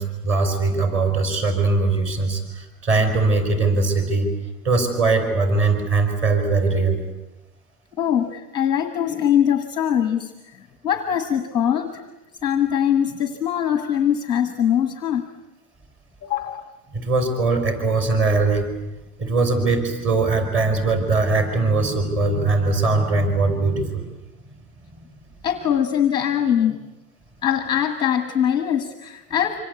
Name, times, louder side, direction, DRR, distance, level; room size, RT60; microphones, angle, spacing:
voice 1, 0.0-4.3 4.6-7.0 16.9-18.7 19.2-24.1 24.8-25.0, right 3 dB, 25° right, 7 dB, 5.3 m, -21 dB
voice 2, 8.0-12.0 12.4-15.2 16.2-16.6 25.4-26.8 27.4-29.6, left 9 dB, 10° left, 8 dB, 1.1 m, -22 dB
27.0 x 25.5 x 8.2 m, 1.0 s
supercardioid pair, 170°, 47 cm